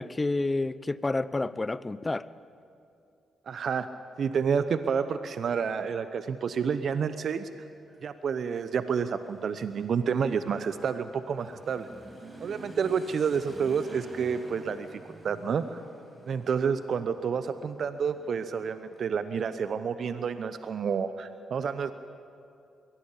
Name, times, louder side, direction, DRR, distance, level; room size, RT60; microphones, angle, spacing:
voice 1, 0.0-2.2, left 2 dB, 25° left, 17 dB, 0.8 m, -29 dB
voice 2, 3.5-3.9 4.2-7.5 8.0-11.9 12.4-15.8 16.2-21.9, right 6 dB, 60° right, 11 dB, 0.8 m, -29 dB
Motorcycle / Accelerating revving vroom, 7.7-20.1, right 1 dB, 30° right, 6.8 m, -50 dB
23.0 x 17.5 x 8.4 m, 2.5 s
hypercardioid pair, 45°, 0 cm